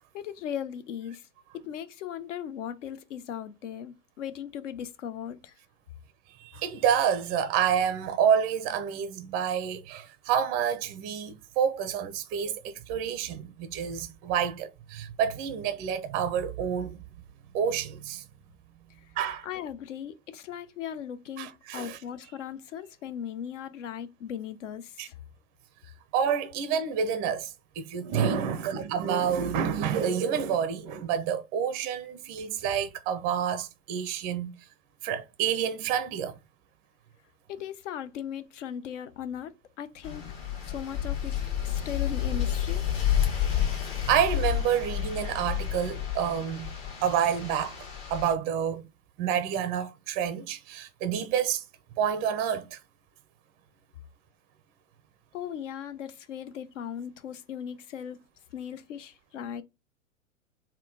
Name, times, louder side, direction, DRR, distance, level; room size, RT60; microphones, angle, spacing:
voice 1, 0.1-1.3 1.5-5.5 19.4-25.1 37.5-40.3 40.7-41.4 41.6-42.8 55.3-58.2 58.5-59.6, left 9 dB, 65° left, 0.7 m, -38 dB
voice 2, 6.4-17.0 17.5-18.2 19.2-19.5 21.4-22.0 25.0-25.1 26.1-34.5 35.0-36.4 44.1-46.7 47.0-47.8 48.1-48.8 49.2-51.6 52.0-52.8, right 8 dB, 25° right, 0.4 m, -28 dB
sound 1, 40.0-48.3, left 9 dB, 40° left, 1.3 m, -30 dB
3.6 x 2.2 x 3.7 m
figure-of-eight pair, 100°, 40 cm